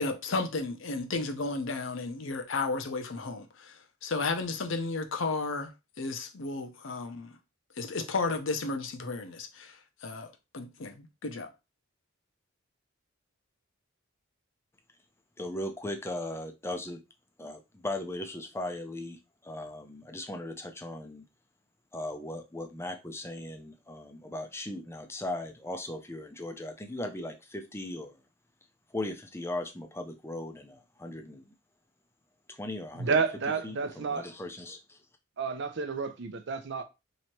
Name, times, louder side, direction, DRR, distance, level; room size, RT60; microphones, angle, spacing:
voice 1, 0.0-5.7 6.0-7.4 7.8-9.8 10.0-10.3 10.5-11.5, left 3 dB, 65° left, 0.7 m, -33 dB
voice 2, 15.4-17.0 17.4-21.2 21.9-28.2 28.9-31.5 32.5-33.1 33.6-35.0, left 1 dB, 10° left, 0.5 m, -38 dB
voice 3, 33.0-34.3 35.4-36.8, right 5 dB, 55° right, 0.5 m, -30 dB
3.0 x 2.8 x 4.4 m
head